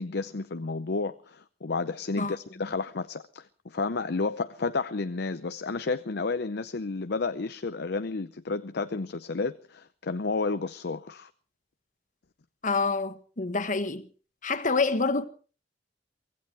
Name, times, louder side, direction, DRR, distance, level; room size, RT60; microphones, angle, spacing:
voice 1, 0.0-11.3, left 3 dB, 65° left, 0.7 m, -31 dB
voice 2, 12.6-14.1 14.4-15.2, left 4 dB, 45° left, 1.3 m, -27 dB
24.0 x 16.5 x 3.4 m
head